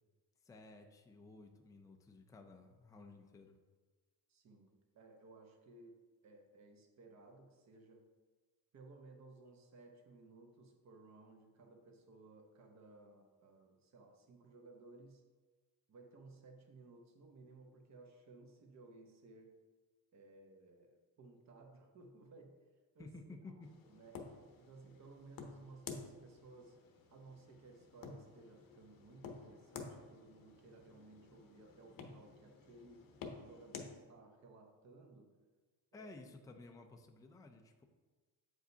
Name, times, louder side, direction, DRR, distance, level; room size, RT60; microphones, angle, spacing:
voice 1, 0.4-3.6 23.0-23.8 35.9-37.8, left 2 dB, 10° left, 4 dB, 0.4 m, -55 dB
voice 2, 4.3-6.0 6.2-8.0 8.7-15.2 15.9-19.6 20.1-22.6 22.9-24.2 24.6-26.8 27.1-33.0 33.4-35.3 35.9-36.2, right 3 dB, 45° right, 3 dB, 0.9 m, -59 dB
sound 1, 23.6-33.9, left 5 dB, 65° left, 0.8 m, -52 dB
7.7 x 4.9 x 2.7 m, 1.3 s
cardioid pair, 140°, 38 cm